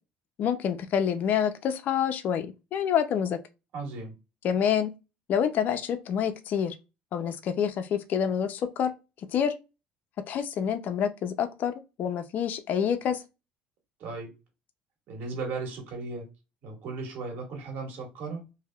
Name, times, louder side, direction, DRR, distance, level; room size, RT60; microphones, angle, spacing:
voice 1, 0.4-3.4 4.4-4.9 5.3-6.8 7.1-8.9 9.3-9.5 10.3-11.7 12.0-13.2, left 8 dB, 50° left, 0.4 m, -27 dB
voice 2, 3.7-4.1 14.0-14.3 15.1-16.2 16.6-18.5, right 3 dB, 65° right, 1.7 m, -36 dB
3.2 x 2.7 x 2.3 m
cardioid pair, 105°, 4 cm